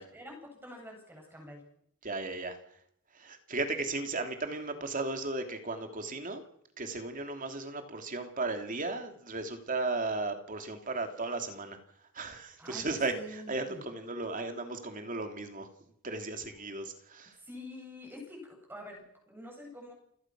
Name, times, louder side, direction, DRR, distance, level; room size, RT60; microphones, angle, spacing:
voice 1, 0.0-1.6 12.6-13.8 17.3-19.9, left 1 dB, 10° right, 1 dB, 7.7 m, -47 dB
voice 2, 2.0-2.6 3.1-6.4 6.8-11.8 12.1-15.7 16.0-17.4, right 3 dB, 40° right, 6 dB, 3.0 m, -35 dB
28.5 x 17.0 x 6.2 m, 0.72 s
head